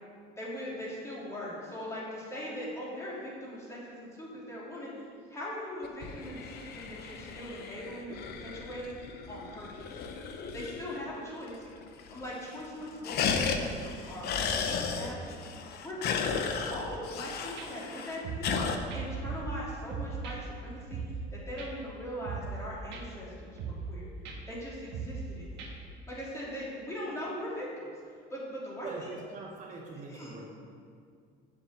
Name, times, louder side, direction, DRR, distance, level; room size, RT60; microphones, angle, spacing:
voice 1, 0.4-4.9 5.3-9.0 9.3-10.0 10.5-11.7 12.1-15.5 15.8-16.4 16.7-21.0 21.3-24.1 24.5-25.6 26.1-27.9 28.3-29.3 30.1-30.4, equal, 15° left, -7 dB, 3.1 m, -40 dB
sound 1, 5.8-11.2 11.5-11.6 11.8-12.3 12.6-18.8, left 5 dB, 55° left, 0.9 m, -34 dB
sound 2, 17.6-17.7 18.2-18.6 18.9-19.6 19.9-20.4 20.9-21.3 21.6-21.7 22.2-22.6 22.9-23.0 23.6-24.0 24.3-24.4 24.9-25.3 25.6-25.7, right 5 dB, 60° right, 1.6 m, -38 dB
voice 2, 28.8-30.4, right 3 dB, 40° right, 0 dB, 1.0 m, -42 dB
7.7 x 7.3 x 7.9 m, 2.2 s
cardioid pair, 155°, 20 cm